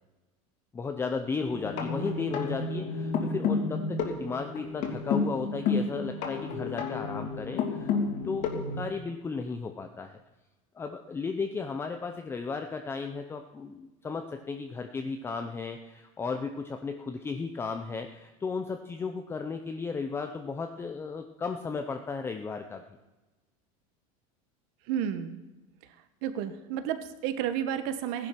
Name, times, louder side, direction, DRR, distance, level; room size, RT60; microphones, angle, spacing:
voice 1, 0.7-8.0 8.2-10.1 10.7-22.8, left 4 dB, 15° left, 6 dB, 0.6 m, -35 dB
sound 1, 1.5-8.8, left 4 dB, 50° left, 2.8 m, -31 dB
voice 2, 24.9-25.4 26.2-28.3, right 9 dB, 60° right, 10 dB, 1.5 m, -31 dB
16.0 x 11.0 x 5.9 m, 1.1 s
supercardioid pair, 155°, 18 cm